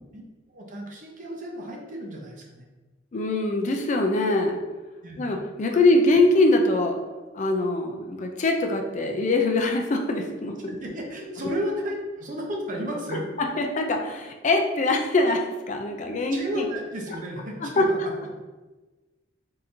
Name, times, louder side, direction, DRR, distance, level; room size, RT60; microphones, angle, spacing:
voice 1, 0.5-2.6 5.0-5.3 10.8-13.2 16.3-18.1, equal, 45° right, -1 dB, 0.8 m, -33 dB
voice 2, 3.1-4.6 5.2-7.0 7.3-10.8 13.6-16.6 17.8-17.9, left 2 dB, 40° left, 3 dB, 0.4 m, -23 dB
4.2 x 3.8 x 2.6 m, 1.2 s
head